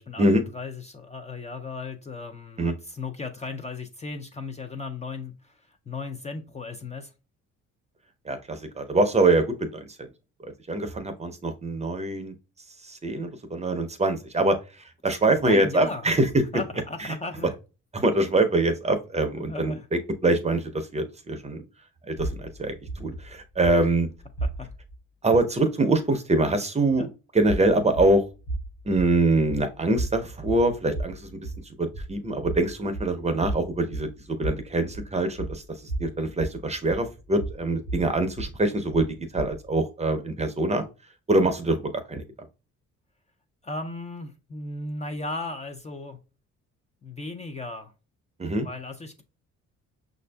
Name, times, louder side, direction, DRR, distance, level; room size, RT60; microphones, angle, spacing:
voice 1, 0.5-7.1 15.0-16.1 16.5-17.6 19.4-19.9 23.8-23.9 24.4-24.7 27.0-27.1 43.6-46.2 47.0-47.9 48.6-49.2, left 3 dB, 25° left, 5 dB, 0.4 m, -36 dB
voice 2, 8.3-9.9 10.4-12.3 12.8-14.6 15.0-16.3 17.9-19.7 20.2-21.6 22.1-24.1 25.2-27.1 27.3-28.2 28.9-31.3 31.8-35.6 36.0-39.1 39.3-40.8 41.3-42.2 48.4-48.7, right 2 dB, 20° right, 8 dB, 0.6 m, -24 dB
sound 1, 22.2-25.0 27.4-39.7, right 2 dB, 75° left, 0.9 m, -35 dB
5.7 x 2.6 x 2.2 m, 0.31 s
cardioid pair, 90°, 30 cm